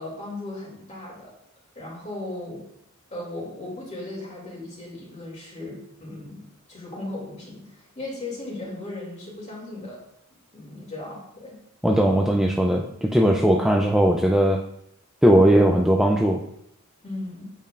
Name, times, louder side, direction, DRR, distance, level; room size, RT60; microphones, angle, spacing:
voice 1, 0.0-1.3 1.7-2.7 3.1-10.0 10.5-11.6 13.5-13.6 17.0-17.5, left 2 dB, 30° left, -4 dB, 2.7 m, -37 dB
voice 2, 11.8-14.6 15.2-16.4, equal, ahead, 0 dB, 0.4 m, -18 dB
8.6 x 6.6 x 2.5 m, 0.74 s
head